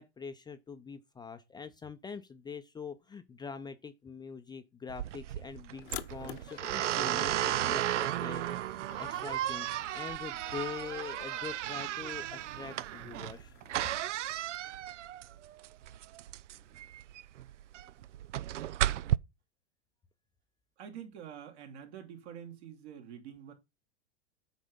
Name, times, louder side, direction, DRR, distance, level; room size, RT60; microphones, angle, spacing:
voice 1, 0.0-13.5, left 6 dB, 10° left, 0.6 m, -44 dB
sound 1, 4.9-19.2, right 13 dB, 80° right, 0.5 m, -34 dB
sound 2, 5.8-5.9 6.5-7.1 7.8-8.3 8.9-9.8 10.5-11.7, left 8 dB, 85° left, 1.4 m, -52 dB
sound 3, 5.8-14.6, left 14 dB, 65° left, 1.0 m, -52 dB
voice 2, 20.8-23.5, right 9 dB, 65° right, 2.8 m, -46 dB
8.2 x 4.9 x 5.4 m
hypercardioid pair, 105°, 36 cm